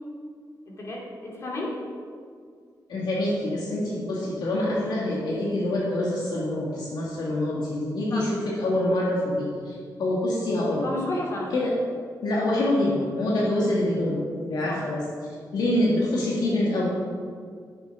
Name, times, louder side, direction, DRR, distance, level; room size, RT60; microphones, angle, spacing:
voice 1, 0.7-1.8 8.1-8.3 10.8-11.6 14.6-14.9, left 1 dB, 40° left, -2 dB, 2.3 m, -32 dB
voice 2, 2.9-9.7 10.0-10.9 11.5-11.7 12.2-14.2 14.5-15.0 15.5-16.9, left 1 dB, 75° left, -4 dB, 1.8 m, -25 dB
10.5 x 7.5 x 5.5 m, 2.1 s
wide cardioid pair, 170°, 7 cm